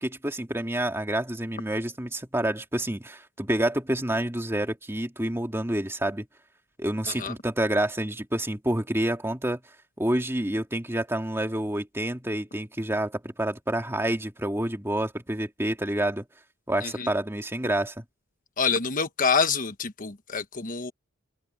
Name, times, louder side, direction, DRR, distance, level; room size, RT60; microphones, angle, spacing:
voice 1, 0.0-6.2 6.8-9.6 10.0-16.2 16.7-18.0, right 1 dB, 10° right, 2.5 m, -28 dB
voice 2, 18.6-20.9, left 5 dB, 45° left, 1.3 m, -27 dB
head